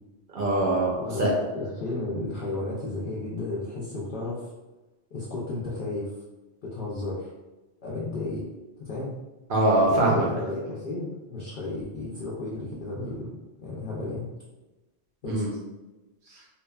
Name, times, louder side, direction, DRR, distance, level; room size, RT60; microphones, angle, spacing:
voice 1, 0.3-1.3 9.5-10.3 15.3-15.5, right 2 dB, 55° right, -2 dB, 0.7 m, -23 dB
voice 2, 1.0-4.5 5.1-6.1 6.6-7.3 7.8-8.4 8.8-9.2 9.9-13.3 13.6-14.3 15.2-15.4, left 2 dB, 60° left, -6 dB, 0.6 m, -33 dB
2.7 x 2.1 x 2.2 m, 1.1 s
omnidirectional pair, 1.1 m